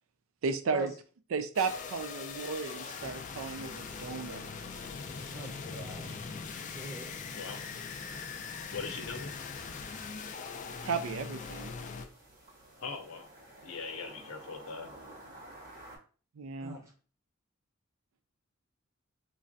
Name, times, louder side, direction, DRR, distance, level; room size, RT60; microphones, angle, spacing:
voice 1, 0.4-0.9 1.3-4.4 10.8-11.7 16.4-16.8, right 5 dB, 70° right, 10 dB, 0.4 m, -34 dB
sound 1, 1.6-12.1, left 5 dB, 35° left, 0.3 m, -41 dB
voice 2, 5.3-6.1 6.7-7.1 16.6-16.9, right 1 dB, 15° right, -1 dB, 0.7 m, -41 dB
sound 2, 7.8-16.0, right 1 dB, 40° right, 1.1 m, -54 dB
voice 3, 8.7-9.3 12.8-13.3 13.6-14.9, left 4 dB, 75° left, 4 dB, 0.6 m, -40 dB
3.2 x 2.4 x 2.6 m, 0.38 s
head